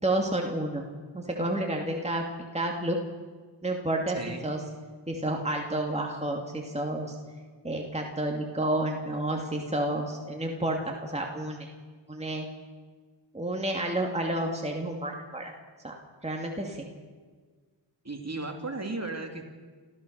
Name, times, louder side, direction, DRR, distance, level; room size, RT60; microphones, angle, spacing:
voice 1, 0.0-0.8 1.1-3.0 3.6-4.2 4.4-4.6 5.1-7.2 7.6-11.7 12.1-12.5 13.3-15.5 15.8-16.9, right 1 dB, 15° right, 1 dB, 2.5 m, -30 dB
voice 2, 18.0-19.6, right 2 dB, 35° right, 3 dB, 3.1 m, -35 dB
27.5 x 14.5 x 6.7 m, 1.5 s
cardioid pair, 45°, 47 cm